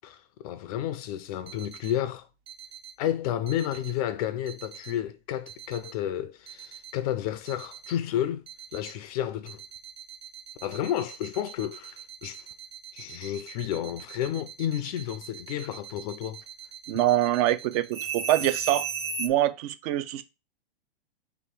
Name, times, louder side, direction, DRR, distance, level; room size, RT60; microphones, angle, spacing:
voice 1, 0.0-2.3 3.0-9.6 10.6-12.5 12.9-16.4, left 11 dB, 40° left, 0.4 m, -31 dB
sound 1, 1.5-1.9 2.5-2.9 3.5-3.9 4.5-4.9 5.5-5.9 6.5-6.9 7.5-7.9 8.5-8.9 9.5-19.3, right 6 dB, 80° right, 1.1 m, -39 dB
voice 2, 16.9-18.9 19.2-20.2, right 13 dB, 35° right, 0.5 m, -24 dB
3.5 x 3.0 x 4.5 m
hypercardioid pair, 125°, 31 cm